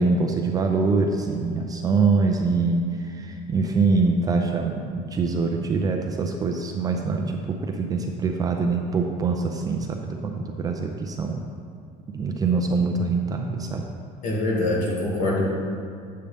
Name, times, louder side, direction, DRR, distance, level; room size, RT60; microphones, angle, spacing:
voice 1, 0.0-11.4 12.1-13.8, right 4 dB, 20° right, 2 dB, 0.4 m, -24 dB
voice 2, 14.2-15.5, left 2 dB, 50° left, -4 dB, 2.1 m, -24 dB
8.5 x 7.5 x 3.4 m, 2.3 s
cardioid pair, 165°, 17 cm